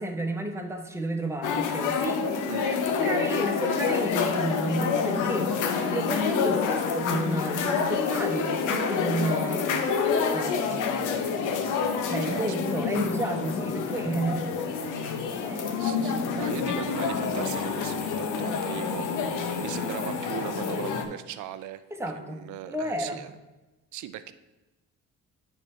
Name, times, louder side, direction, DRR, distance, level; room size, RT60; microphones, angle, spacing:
voice 1, 0.0-2.2 2.6-10.0 10.3-11.2 12.1-14.5 15.4-16.0 21.9-23.2, right 1 dB, 10° right, 4 dB, 0.9 m, -32 dB
sound 1, 1.4-21.1, left 5 dB, 90° left, 0.7 m, -28 dB
voice 2, 11.9-12.8 15.7-21.8 22.1-23.3 23.9-24.3, right 12 dB, 75° right, 13 dB, 0.5 m, -39 dB
8.8 x 3.3 x 4.2 m, 1.1 s
cardioid pair, 90°, 30 cm